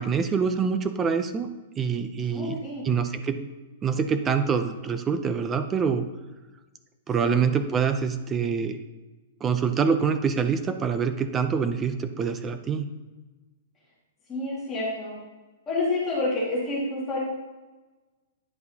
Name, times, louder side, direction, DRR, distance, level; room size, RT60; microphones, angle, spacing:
voice 1, 0.0-1.5 1.8-3.5 3.8-6.0 7.1-8.8 9.4-12.9, right 6 dB, 10° right, 9 dB, 0.4 m, -25 dB
voice 2, 2.3-2.8 7.2-7.4 14.3-15.2 15.7-17.2, left 2 dB, 15° left, -6 dB, 1.8 m, -28 dB
10.5 x 4.6 x 2.7 m, 1.2 s
hypercardioid pair, 180°, 0 cm